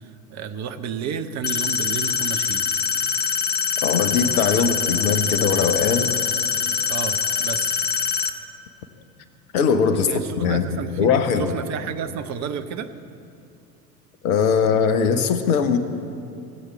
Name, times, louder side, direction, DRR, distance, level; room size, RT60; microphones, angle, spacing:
voice 1, 0.3-2.7 6.9-7.8 10.0-11.1 11.4-12.9, right 7 dB, 35° right, 9 dB, 0.8 m, -31 dB
sound 1, 1.4-8.3, left 6 dB, 20° left, 0.7 m, -24 dB
voice 2, 3.8-6.2 9.5-10.1 10.4-11.5 14.2-15.8, left 6 dB, 60° left, 10 dB, 1.2 m, -20 dB
17.5 x 8.2 x 8.6 m, 2.7 s
figure-of-eight pair, 70°, 50 cm